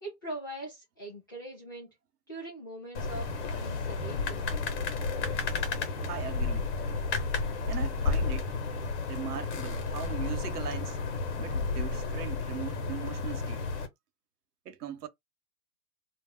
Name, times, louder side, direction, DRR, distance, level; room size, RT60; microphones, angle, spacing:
voice 1, 0.0-1.9 2.3-3.3 3.5-4.5, right 1 dB, 15° left, 0.4 m, -41 dB
sound 1, 2.9-13.9, left 4 dB, 45° left, 0.9 m, -32 dB
voice 2, 6.1-6.7 7.6-8.5 9.1-11.0 11.4-13.6 14.7-15.1, right 9 dB, 75° right, 0.7 m, -39 dB
2.3 x 2.1 x 3.4 m
hypercardioid pair, 140°, 47 cm